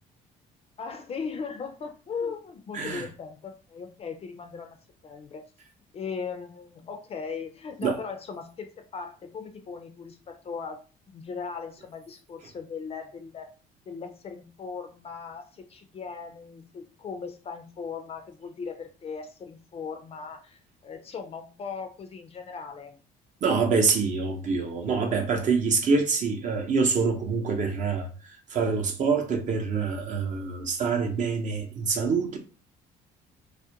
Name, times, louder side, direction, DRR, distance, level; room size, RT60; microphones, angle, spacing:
voice 1, 0.8-4.8 5.0-5.4 5.9-10.8 11.1-13.5 13.9-23.0, left 5 dB, 35° left, 0.4 m, -38 dB
voice 2, 2.7-3.1 7.8-8.0 23.4-32.4, right 5 dB, 45° right, 0.6 m, -26 dB
2.4 x 2.1 x 2.8 m
cardioid pair, 110°, 17 cm